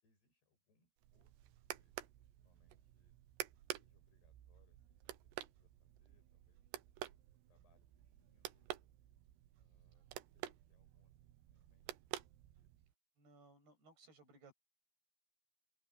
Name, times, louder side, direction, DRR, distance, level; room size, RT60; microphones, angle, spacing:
voice 1, 0.0-3.2 3.8-6.7 7.3-8.7 9.6-10.1 10.3-12.7, left 4 dB, 70° left, 8.9 m, -79 dB
sound 1, 1.0-12.9, right 14 dB, 85° right, 3.2 m, -51 dB
voice 2, 13.2-14.5, right 3 dB, 70° right, 9.7 m, -63 dB
open air
omnidirectional pair, 4.8 m